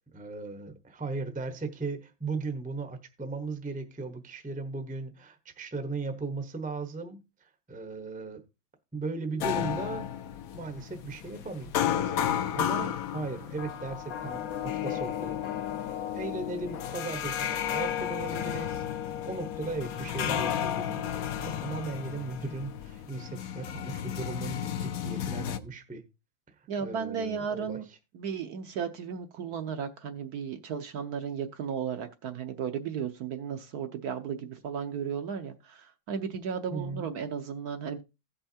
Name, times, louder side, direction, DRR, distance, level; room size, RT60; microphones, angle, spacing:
voice 1, 0.1-8.4 8.9-10.1 10.5-15.4 16.1-26.0 26.6-27.8 36.7-37.1, right 3 dB, 5° right, 0.6 m, -37 dB
sound 1, 9.4-25.6, left 10 dB, 65° left, 1.0 m, -33 dB
voice 2, 26.7-27.8 28.1-38.0, right 7 dB, 65° right, 1.1 m, -35 dB
16.5 x 5.6 x 2.8 m
omnidirectional pair, 2.0 m